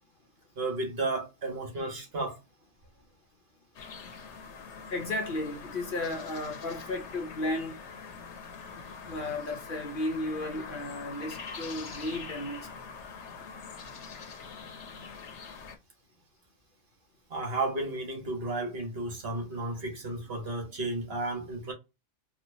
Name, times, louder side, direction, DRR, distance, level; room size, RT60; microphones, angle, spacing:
voice 1, 0.6-2.4 17.3-21.7, right 2 dB, 55° right, 1.4 m, -33 dB
sound 1, 3.7-15.8, left 5 dB, 75° left, 1.1 m, -44 dB
voice 2, 4.9-7.8 9.1-12.6, left 2 dB, 50° left, 0.8 m, -34 dB
4.2 x 2.4 x 2.6 m
omnidirectional pair, 1.2 m